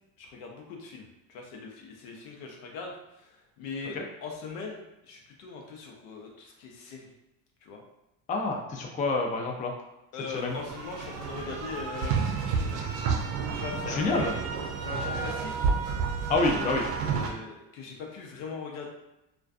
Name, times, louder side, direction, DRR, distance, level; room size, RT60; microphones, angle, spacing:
voice 1, 0.2-7.1 7.6-7.8 10.1-13.0 13.6-14.2 14.8-15.7 16.5-16.7 17.1-18.9, left 4 dB, 85° left, 0 dB, 0.7 m, -41 dB
voice 2, 8.3-9.7 10.3-10.6 13.9-14.3 16.3-16.8, left 3 dB, 20° left, 1 dB, 0.3 m, -27 dB
sound 1, 10.3-17.3, right 5 dB, 65° right, 0.6 m, -30 dB
2.4 x 2.3 x 2.3 m, 0.93 s
supercardioid pair, 80°, 41 cm